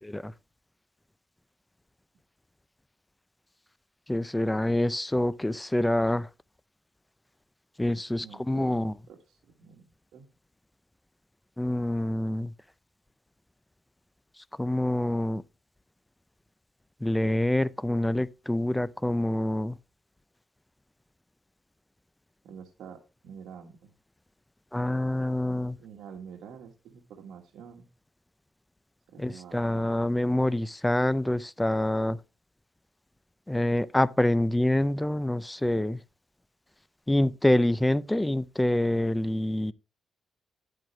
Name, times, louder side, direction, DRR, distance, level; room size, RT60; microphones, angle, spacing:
voice 1, 4.1-6.3 7.8-8.9 11.6-12.5 14.6-15.4 17.0-19.8 24.7-25.8 29.2-32.2 33.5-36.0 37.1-39.7, left 1 dB, 10° left, 0.5 m, -26 dB
voice 2, 8.2-10.3 22.4-23.9 25.5-27.9 29.1-29.9, right 7 dB, 90° right, 1.6 m, -48 dB
11.0 x 7.6 x 3.2 m
cardioid pair, 105°, 0 cm